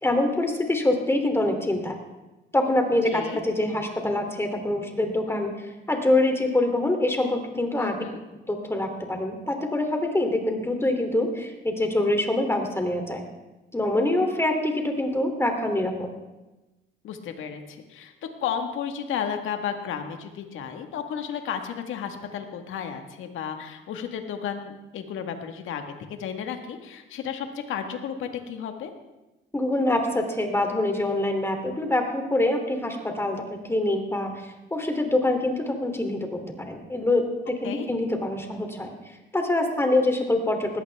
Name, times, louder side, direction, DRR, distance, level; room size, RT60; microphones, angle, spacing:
voice 1, 0.0-2.0 2.5-8.0 8.5-13.2 13.7-16.1 29.5-38.9 39.3-40.8, left 1 dB, 10° left, 4 dB, 2.9 m, -25 dB
voice 2, 7.8-8.2 17.0-18.1 18.4-25.8 26.1-28.9 37.6-37.9, left 8 dB, 85° left, 6 dB, 1.6 m, -33 dB
19.5 x 14.0 x 3.5 m, 1.1 s
cardioid pair, 90°, 20 cm